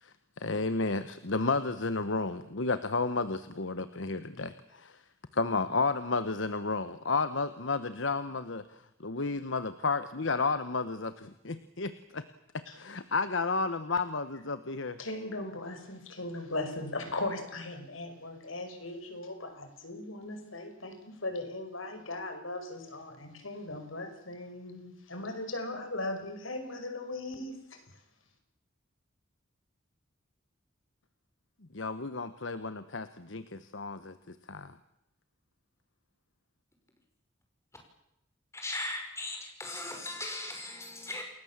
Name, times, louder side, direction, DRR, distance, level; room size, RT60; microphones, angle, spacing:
voice 1, 0.0-5.0 5.3-8.6 9.0-12.2 12.5-15.0 31.7-34.7, left 3 dB, 65° left, 12 dB, 1.1 m, -32 dB
voice 2, 15.0-27.8, left 2 dB, 85° left, 7 dB, 5.5 m, -38 dB
voice 3, 38.5-41.2, left 2 dB, 15° left, 2 dB, 5.9 m, -38 dB
29.0 x 20.5 x 7.5 m, 0.84 s
head